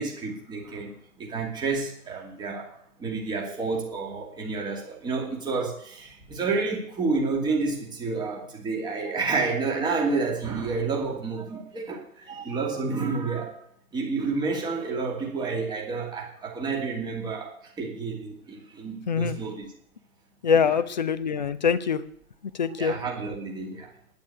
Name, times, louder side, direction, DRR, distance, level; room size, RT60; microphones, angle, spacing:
voice 1, 0.0-13.6 13.9-19.7 22.8-23.9, right 4 dB, 10° right, 0 dB, 2.5 m, -30 dB
voice 2, 19.1-19.4 20.4-22.0 22.5-23.0, left 6 dB, 30° left, 16 dB, 0.6 m, -24 dB
9.5 x 8.8 x 9.5 m, 0.66 s
figure-of-eight pair, 130°, 45 cm